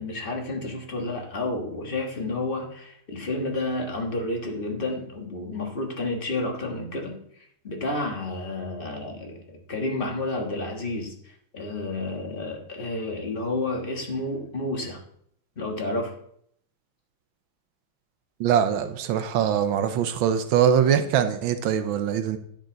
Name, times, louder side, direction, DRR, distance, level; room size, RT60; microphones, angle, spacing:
voice 1, 0.0-7.2 7.6-11.1 11.5-15.0 15.6-16.1, left 2 dB, 30° left, 1 dB, 1.5 m, -30 dB
voice 2, 18.4-22.4, right 8 dB, 80° right, 9 dB, 1.5 m, -22 dB
10.0 x 7.1 x 3.9 m, 0.68 s
omnidirectional pair, 2.3 m